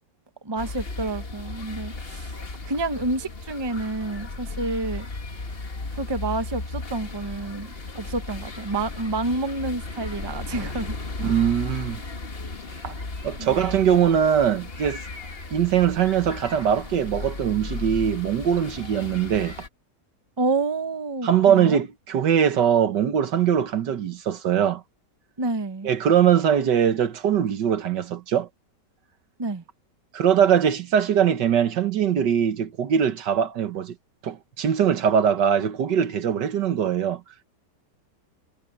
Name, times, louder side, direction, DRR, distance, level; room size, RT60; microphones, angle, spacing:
voice 1, 0.4-2.3 2.7-5.1 5.9-10.9 13.4-13.6 20.4-21.8 25.4-25.9 29.4-29.6, right 2 dB, 20° right, 0.9 m, -29 dB
sound 1, 0.6-19.7, left 3 dB, 35° left, 1.7 m, -35 dB
voice 2, 11.2-12.0 12.8-12.9 13.2-15.0 15.5-19.6 21.2-24.8 25.8-28.5 30.1-33.9 34.2-37.2, right 8 dB, 75° right, 1.8 m, -21 dB
omnidirectional pair, 1.9 m